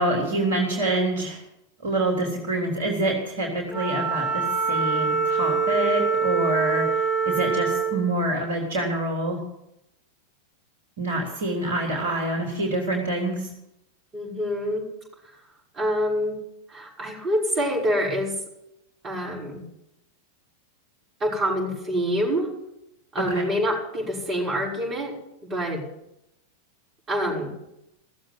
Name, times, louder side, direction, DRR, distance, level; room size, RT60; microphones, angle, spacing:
voice 1, 0.0-1.4 1.8-6.9 7.2-9.4 11.0-13.5 23.3-23.5, right 1 dB, 60° right, 0 dB, 3.4 m, -26 dB
Wind instrument woodwind instrument, 3.7-8.0, right 5 dB, ahead, 3.9 m, -24 dB
voice 2, 14.1-14.9 15.7-16.4 16.7-18.4 19.0-19.6 21.2-22.5 23.1-25.1 25.4-25.8 27.1-27.5, equal, 25° right, -3 dB, 6.0 m, -26 dB
17.0 x 7.6 x 9.7 m, 0.84 s
figure-of-eight pair, 90°, 0 cm